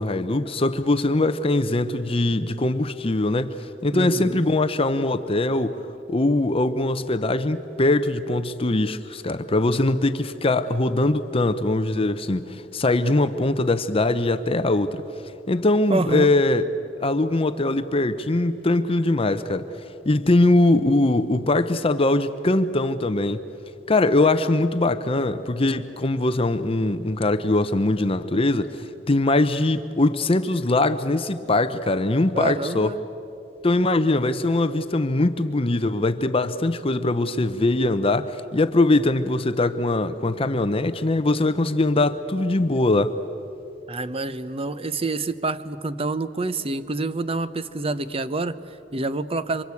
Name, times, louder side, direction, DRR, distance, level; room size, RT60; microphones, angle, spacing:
voice 1, 0.0-3.6 3.8-5.8 6.1-15.0 15.5-16.7 17.0-19.7 20.0-23.4 23.9-32.9 33.6-43.2, left 2 dB, 30° left, 0.8 m, -22 dB
voice 2, 3.9-4.4 15.9-16.3 32.3-33.0 43.9-49.6, right 2 dB, 30° right, 0.8 m, -27 dB
27.0 x 25.0 x 8.4 m
head